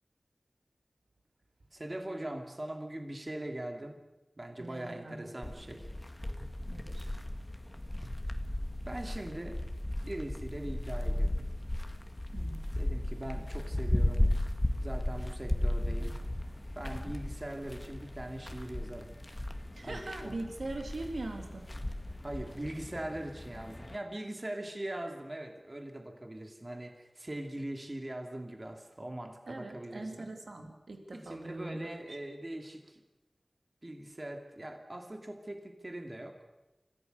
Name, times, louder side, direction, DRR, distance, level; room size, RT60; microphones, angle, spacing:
voice 1, 1.7-4.0 4.4-5.9 8.9-9.6 10.0-11.5 12.8-14.3 14.8-16.2 16.7-19.1 19.8-20.3 22.2-30.3 31.1-33.0 33.8-36.4, right 1 dB, 35° right, 4 dB, 2.8 m, -41 dB
voice 2, 4.6-5.3 6.7-7.1 12.3-12.6 19.7-21.7 29.5-32.0, right 2 dB, 80° right, 3 dB, 3.3 m, -41 dB
sound 1, 5.4-24.0, left 1 dB, 25° left, 1.9 m, -35 dB
26.0 x 15.5 x 6.7 m, 1.1 s
wide cardioid pair, 55°, 0 cm